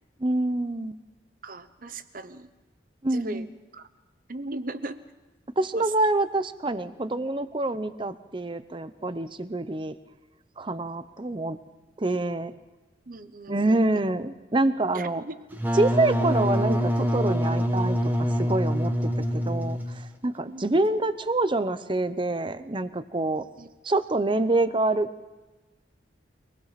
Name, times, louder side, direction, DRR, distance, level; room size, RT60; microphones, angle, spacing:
voice 1, 0.2-1.0 3.0-3.5 5.6-9.9 10.6-11.6 12.0-12.5 13.5-15.2 15.7-23.5 23.8-25.1, right 2 dB, 25° right, 13 dB, 0.7 m, -26 dB
voice 2, 1.4-2.5 3.1-3.5 3.7-3.8 4.3-5.0 5.7-5.9 13.1-13.8 14.9-15.4 20.5-20.7 23.6-23.7, right 2 dB, 50° right, 11 dB, 1.0 m, -38 dB
Wind instrument woodwind instrument, 15.5-20.1, equal, 10° right, 1.2 m, -25 dB
24.5 x 19.0 x 5.9 m, 1.2 s
head